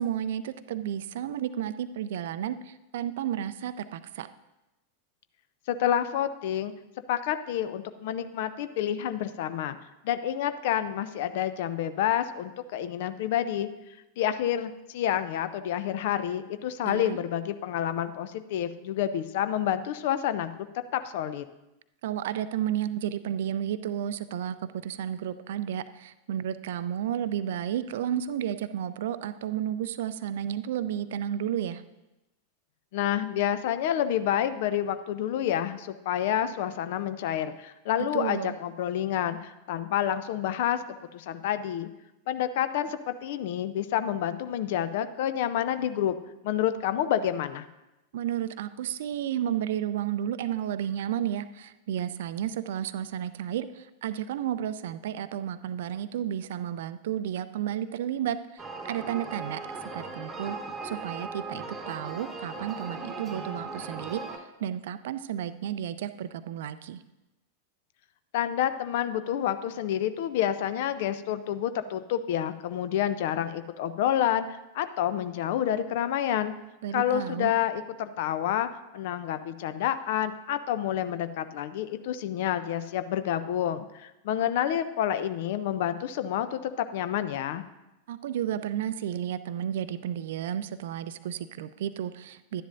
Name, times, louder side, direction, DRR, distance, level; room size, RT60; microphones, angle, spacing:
voice 1, 0.0-4.3 16.8-17.2 22.0-31.8 38.1-38.5 48.1-59.6 59.9-60.6 60.8-64.2 64.6-67.0 76.8-77.5 88.1-92.6, right 10 dB, 55° right, 13 dB, 0.4 m, -32 dB
voice 2, 5.7-6.7 7.1-9.8 10.0-13.7 14.2-20.7 20.9-21.4 32.9-40.8 41.1-41.9 42.3-46.2 46.4-47.6 68.3-74.5 74.7-76.5 76.9-78.7 78.9-87.6, left 10 dB, 50° left, 12 dB, 0.5 m, -28 dB
sound 1, 58.6-64.4, right 3 dB, 15° right, 1.1 m, -38 dB
11.5 x 10.0 x 2.6 m, 0.96 s
figure-of-eight pair, 90°, 0 cm